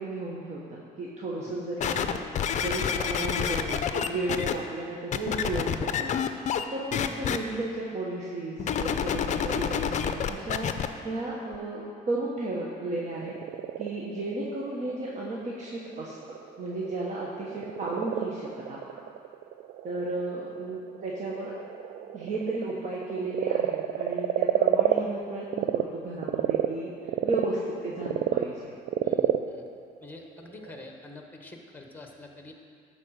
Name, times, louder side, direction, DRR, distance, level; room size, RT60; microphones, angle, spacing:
voice 1, 0.0-2.2 2.6-6.2 6.7-10.7 11.0-13.3 13.8-19.0 19.8-21.5 22.1-28.7, right 2 dB, 45° right, -4 dB, 1.2 m, -34 dB
sound 1, 1.8-4.5 5.1-6.6 6.9-7.4 8.6-10.9 11.5-11.6, left 8 dB, 45° left, 0.5 m, -28 dB
Frog, 12.9-25.8 26.2-30.8, right 12 dB, 70° right, 0.4 m, -30 dB
voice 2, 29.0-29.7 30.0-32.5, left 2 dB, 10° left, 2 dB, 1.2 m, -46 dB
10.5 x 4.3 x 6.4 m, 2.3 s
cardioid pair, 110°, 17 cm